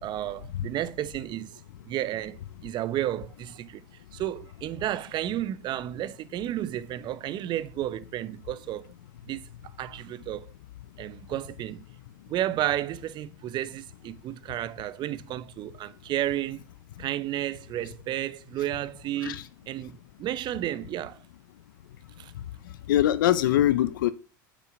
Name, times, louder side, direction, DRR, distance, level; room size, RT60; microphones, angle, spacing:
voice 1, 0.0-3.8 4.1-8.9 9.2-10.5 11.0-11.8 12.3-16.6 17.0-21.2 22.2-22.3, right 13 dB, 45° right, 0.8 m, -32 dB
voice 2, 22.9-24.1, left 12 dB, 80° left, 0.8 m, -22 dB
8.5 x 5.8 x 5.8 m
hypercardioid pair, 95°, 11 cm